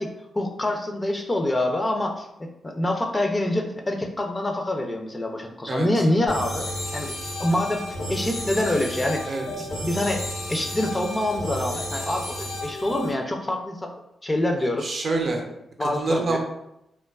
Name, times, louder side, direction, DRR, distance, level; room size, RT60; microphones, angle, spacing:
voice 1, 0.0-9.4 9.8-10.2 10.5-13.9 14.2-15.0 15.8-16.4, left 1 dB, 25° left, 3 dB, 0.4 m, -26 dB
sound 1, 6.3-13.1, left 1 dB, 85° left, 0.7 m, -32 dB
voice 2, 9.3-9.7 14.8-15.4 15.8-16.4, right 3 dB, 60° right, 1 dB, 0.5 m, -26 dB
2.5 x 2.2 x 2.3 m, 0.85 s
cardioid pair, 65°, 0 cm